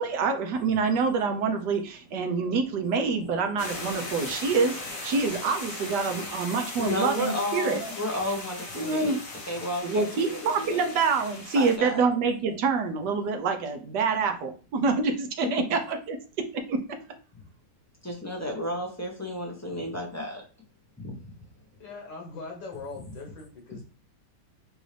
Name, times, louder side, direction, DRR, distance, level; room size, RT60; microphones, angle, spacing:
voice 1, 0.0-7.9 8.7-9.2 9.8-16.8, right 4 dB, 75° right, 5 dB, 1.3 m, -26 dB
sound 1, 3.6-11.8, left 2 dB, 55° left, 1.5 m, -38 dB
voice 2, 6.8-9.2 9.5-10.8 11.5-12.1 15.4-15.5 18.0-20.4 21.0-21.2, left 1 dB, 15° left, 0 dB, 0.6 m, -32 dB
voice 3, 21.8-23.8, left 4 dB, 90° left, 0 dB, 2.2 m, -41 dB
6.1 x 2.7 x 3.3 m, 0.37 s
omnidirectional pair, 1.9 m